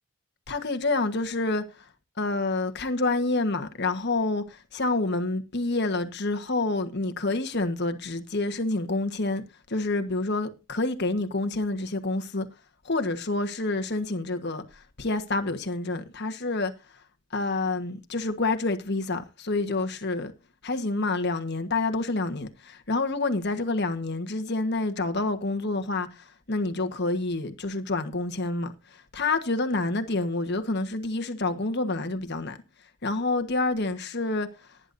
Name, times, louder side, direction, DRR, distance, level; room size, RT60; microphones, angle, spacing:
voice 1, 0.5-1.9 2.2-12.5 12.8-16.7 17.3-20.3 20.6-32.6 33.0-34.7, left 2 dB, 50° left, 1.4 m, -28 dB
18.5 x 10.0 x 2.7 m
head